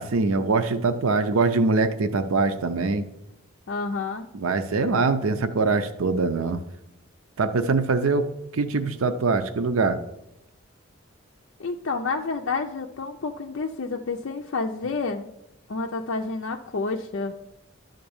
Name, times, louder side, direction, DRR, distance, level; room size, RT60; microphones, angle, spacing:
voice 1, 0.0-3.1 4.3-6.6 7.4-8.3 8.5-10.0, right 3 dB, 90° right, 9 dB, 0.6 m, -23 dB
voice 2, 3.7-4.3 11.6-15.3 15.7-17.3, left 4 dB, 65° left, 2 dB, 0.5 m, -29 dB
11.5 x 3.9 x 7.1 m, 0.87 s
head